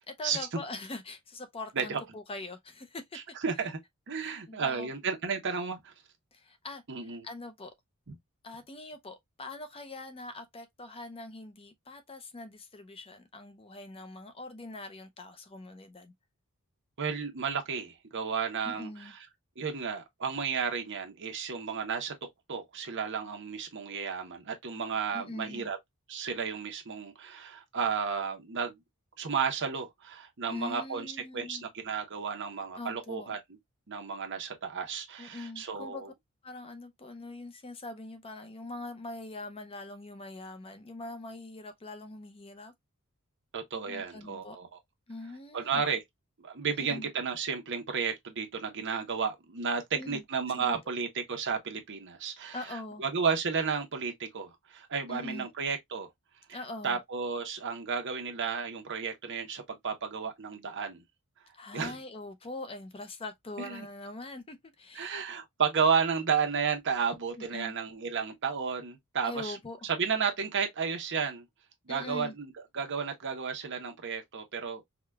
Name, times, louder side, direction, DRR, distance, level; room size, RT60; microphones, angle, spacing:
voice 1, 0.1-3.3 4.2-4.9 6.3-7.7 8.4-16.1 18.7-19.1 25.1-25.7 30.5-31.7 32.8-33.4 35.2-36.0 36.4-42.7 43.9-44.6 45.1-45.8 46.6-47.1 49.9-50.8 52.5-53.0 55.1-55.5 56.5-57.0 61.5-65.2 67.4-67.7 69.2-69.8 71.9-72.3, left 2 dB, 25° left, 0.5 m, -43 dB
voice 2, 3.4-3.8 4.1-5.9 6.9-7.3 17.0-19.2 19.6-22.1 22.5-25.8 26.1-28.8 29.2-33.4 33.9-36.1 43.5-44.7 45.5-46.0 46.4-56.1 56.5-56.6 56.8-61.0 61.7-61.9 63.6-63.8 64.9-69.6 69.8-71.4 71.9-74.8, right 6 dB, 55° right, 0.9 m, -32 dB
4.8 x 2.3 x 2.2 m
head